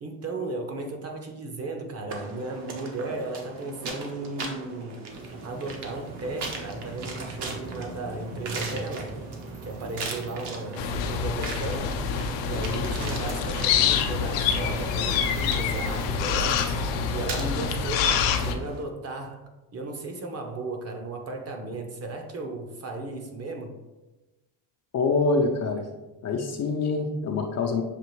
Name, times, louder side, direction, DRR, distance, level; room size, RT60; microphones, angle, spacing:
voice 1, 0.0-5.1 5.4-9.2 9.6-12.0 12.4-16.7 17.1-19.4 19.7-23.7, right 2 dB, 35° right, 3 dB, 0.7 m, -35 dB
sound 1, 2.1-18.8, right 3 dB, 60° right, 1.0 m, -40 dB
sound 2, 5.1-18.6, right 2 dB, 85° right, 1.5 m, -42 dB
sound 3, 10.8-18.5, left 6 dB, 75° left, 0.6 m, -26 dB
voice 2, 24.9-25.9 26.2-27.8, left 3 dB, 35° left, 3 dB, 0.4 m, -25 dB
6.8 x 2.5 x 3.1 m, 1.1 s
cardioid pair, 120°, 45 cm